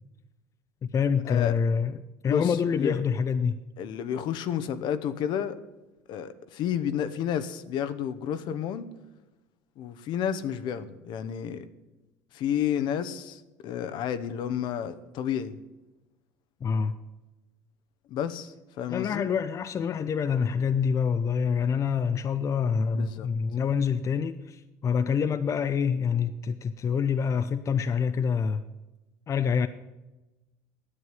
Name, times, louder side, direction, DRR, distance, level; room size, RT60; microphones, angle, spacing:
voice 1, 0.8-3.6 16.6-17.0 18.9-28.6 29.3-29.7, left 6 dB, 35° left, 10 dB, 0.6 m, -26 dB
voice 2, 2.3-3.0 3.8-5.6 6.1-8.9 9.8-11.7 12.3-15.6 18.1-19.3 22.9-23.3, left 9 dB, 60° left, 11 dB, 0.9 m, -31 dB
9.8 x 7.9 x 9.2 m, 1.1 s
supercardioid pair, 80°, 9 cm